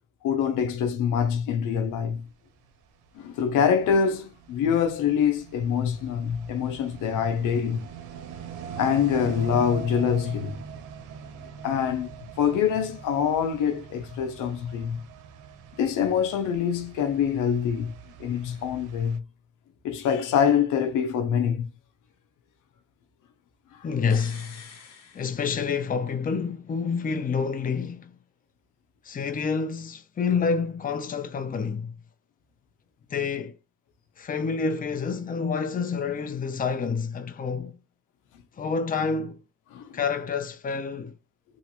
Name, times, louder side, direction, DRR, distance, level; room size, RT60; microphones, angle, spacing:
voice 1, 0.2-2.2 3.1-7.9 8.8-10.6 11.6-12.1 12.4-15.0 15.7-17.9 18.2-19.2 19.8-21.7 23.7-23.9 39.7-40.0, left 7 dB, 90° left, 0.7 m, -25 dB
sound 1, 2.6-19.2, right 7 dB, 85° right, 0.6 m, -42 dB
voice 2, 23.8-24.6 25.1-28.1 29.0-31.9 33.1-33.6 34.2-37.8 38.6-39.4 39.9-41.1, left 5 dB, 30° left, 0.6 m, -28 dB
sound 2, 24.1-26.0 26.3-26.4, left 5 dB, 55° left, 1.3 m, -47 dB
3.1 x 2.5 x 2.9 m
cardioid pair, 90°, 30 cm